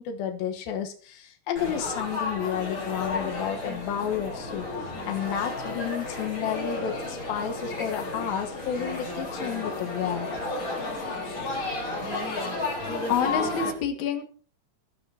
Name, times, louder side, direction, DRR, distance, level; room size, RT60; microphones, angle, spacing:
voice 1, 0.0-10.3, left 9 dB, 90° left, 5 dB, 3.1 m, -31 dB
Laughter / Chatter / Crowd, 1.6-13.7, left 3 dB, 35° left, 4.8 m, -32 dB
voice 2, 13.1-14.2, left 7 dB, 55° left, 4 dB, 3.0 m, -27 dB
22.0 x 13.5 x 2.8 m, 0.42 s
omnidirectional pair, 4.1 m